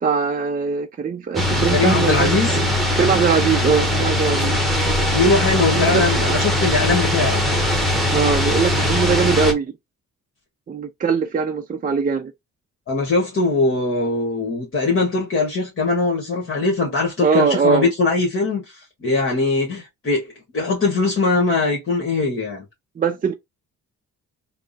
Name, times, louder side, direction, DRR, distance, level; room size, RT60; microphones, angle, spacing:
voice 1, 0.0-4.6 5.7-6.3 8.1-9.7 10.7-12.3 17.2-17.9 23.0-23.3, right 5 dB, 30° right, 0.5 m, -21 dB
sound 1, 1.3-9.5, left 1 dB, ahead, 1.2 m, -20 dB
voice 2, 1.7-2.6 5.1-7.4 12.9-22.6, left 3 dB, 45° left, 1.4 m, -21 dB
3.4 x 2.1 x 4.0 m
cardioid pair, 90°, 30 cm